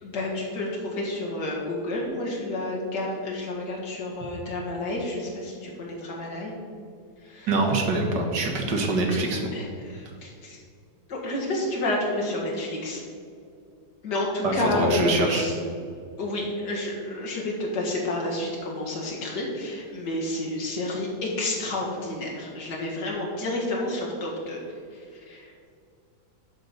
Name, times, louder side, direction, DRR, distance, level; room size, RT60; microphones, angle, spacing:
voice 1, 0.0-6.5 7.2-7.5 9.5-10.6 11.1-13.0 14.0-15.5 16.2-24.6 24.9-25.5, left 1 dB, 80° left, -3 dB, 2.4 m, -30 dB
voice 2, 7.5-9.4 14.4-15.5, right 2 dB, 80° right, 1 dB, 2.0 m, -24 dB
11.0 x 4.0 x 6.8 m, 2.3 s
omnidirectional pair, 1.8 m